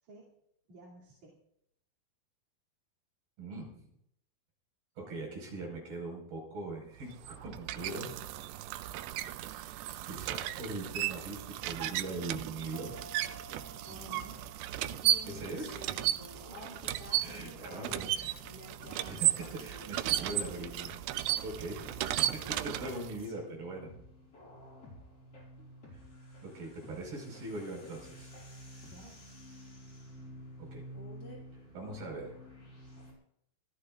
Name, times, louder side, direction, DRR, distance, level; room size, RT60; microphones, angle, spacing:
voice 1, 0.0-0.3 0.7-1.4 13.9-14.5 15.7-16.9 17.2-17.6 18.0-18.6 21.7-22.0 28.9-29.2, right 1 dB, 45° right, -6 dB, 3.9 m, -56 dB
voice 2, 3.4-3.9 5.0-8.1 10.0-12.9 15.3-15.7 17.2-18.3 19.0-20.9 21.4-21.8 22.5-23.9 26.4-28.3 30.7-30.8 31.7-32.3, right 2 dB, 65° right, 0 dB, 7.1 m, -41 dB
sound 1, 7.0-23.2, right 13 dB, 80° right, 2.2 m, -35 dB
sound 2, 12.7-16.0, equal, 80° left, 1.0 m, -55 dB
sound 3, 13.9-33.1, equal, 35° left, 6.8 m, -50 dB
26.0 x 14.5 x 2.5 m, 0.73 s
omnidirectional pair, 4.7 m